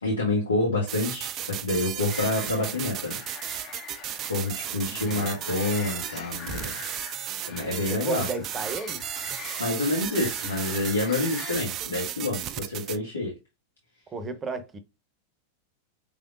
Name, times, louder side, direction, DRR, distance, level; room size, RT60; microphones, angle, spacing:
voice 1, 0.0-3.2 4.3-6.8 7.5-8.3 9.6-13.3, left 2 dB, 75° left, 1.5 m, -28 dB
sound 1, 0.9-13.0, right 11 dB, 35° right, 0.3 m, -35 dB
sound 2, 2.1-11.6, left 6 dB, 35° left, 1.1 m, -43 dB
voice 2, 4.9-5.4 7.9-9.1 14.1-14.8, right 4 dB, 20° right, 0.8 m, -34 dB
5.5 x 3.5 x 2.4 m
figure-of-eight pair, 90°, 0 cm